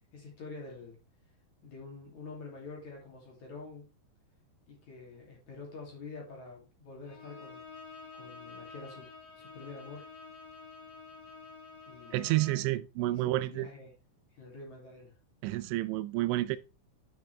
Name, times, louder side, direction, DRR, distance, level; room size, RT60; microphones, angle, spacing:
voice 1, 0.1-1.0 1.6-3.9 4.7-7.6 8.1-9.1 9.3-10.1 11.9-12.2 13.0-13.9 14.3-15.2, left 3 dB, 45° left, 3.5 m, -47 dB
Bowed string instrument, 7.0-12.7, left 4 dB, 70° left, 4.3 m, -49 dB
voice 2, 12.1-13.7 15.4-16.6, right 17 dB, 85° right, 2.9 m, -30 dB
10.5 x 5.9 x 3.3 m
omnidirectional pair, 5.3 m